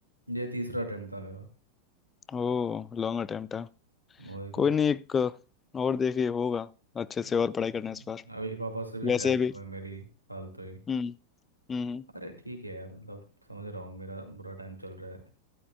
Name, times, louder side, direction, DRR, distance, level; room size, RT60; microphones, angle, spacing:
voice 1, 0.3-1.5 4.2-4.7 7.2-7.3 7.6-10.8 12.1-13.2 13.5-15.2, right 1 dB, 90° right, 2.2 m, -39 dB
voice 2, 2.3-3.7 4.5-5.3 5.7-6.7 7.0-8.2 9.0-9.5 10.9-11.1 11.7-12.0, left 6 dB, 20° left, 0.5 m, -28 dB
12.5 x 12.5 x 2.3 m
figure-of-eight pair, 90°, 0 cm